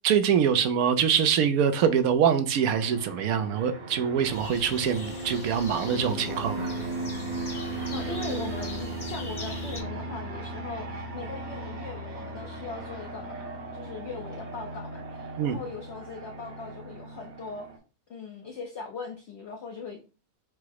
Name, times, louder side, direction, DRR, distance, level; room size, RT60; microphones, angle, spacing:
voice 1, 0.0-6.7 15.4-15.6, right 8 dB, 75° right, 1.0 m, -24 dB
Fixed-wing aircraft airplane, 2.6-17.8, right 2 dB, 40° right, 0.8 m, -37 dB
zablocie-forest-birds-nature-reserve, 4.2-9.8, left 3 dB, 40° left, 0.4 m, -42 dB
sound 1, 5.8-13.5, left 1 dB, 80° left, 2.3 m, -44 dB
voice 2, 7.9-13.4 13.7-17.7 18.1-20.0, left 4 dB, 55° left, 0.8 m, -40 dB
4.7 x 2.0 x 4.6 m
omnidirectional pair, 1.6 m